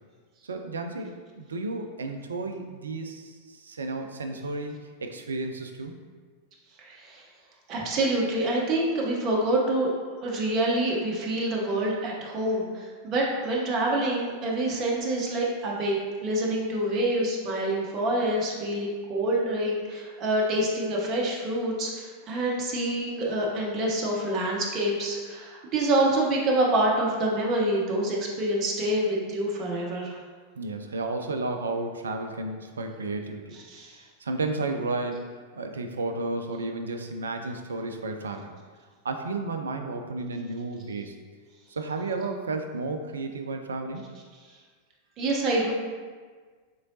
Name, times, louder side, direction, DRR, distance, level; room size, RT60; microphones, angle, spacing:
voice 1, 0.4-4.7 5.0-5.9 30.6-33.6 33.9-35.2 35.5-38.5 39.0-41.1 41.7-44.0, right 3 dB, 70° right, 5 dB, 0.3 m, -32 dB
voice 2, 6.8-7.2 7.7-9.9 10.2-30.2 33.7-34.0 45.2-45.7, right 1 dB, 35° right, -2 dB, 0.7 m, -26 dB
3.7 x 3.1 x 2.6 m, 1.5 s
figure-of-eight pair, 90°, 0 cm